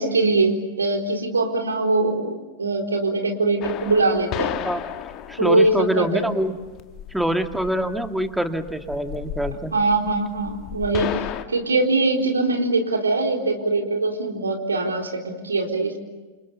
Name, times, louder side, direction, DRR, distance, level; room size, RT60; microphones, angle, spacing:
voice 1, 0.0-4.6 5.4-6.3 9.7-16.0, right 2 dB, 75° right, 3 dB, 4.1 m, -22 dB
sound 1, 3.6-11.4, left 11 dB, 35° left, 1.8 m, -34 dB
voice 2, 5.3-6.5 7.1-9.7, right 1 dB, ahead, 7 dB, 2.1 m, -25 dB
29.0 x 29.0 x 7.1 m, 1.2 s
figure-of-eight pair, 90°, 0 cm